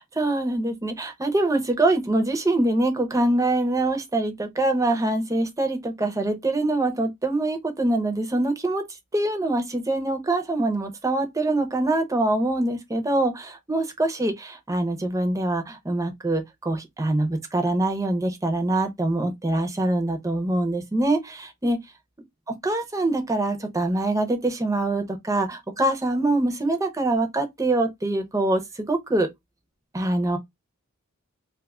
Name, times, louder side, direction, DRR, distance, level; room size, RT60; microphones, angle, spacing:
voice 1, 0.0-8.8 9.1-21.8 22.6-29.3 29.9-30.4, right 2 dB, 15° right, 0.6 m, -24 dB
2.5 x 2.4 x 3.5 m
head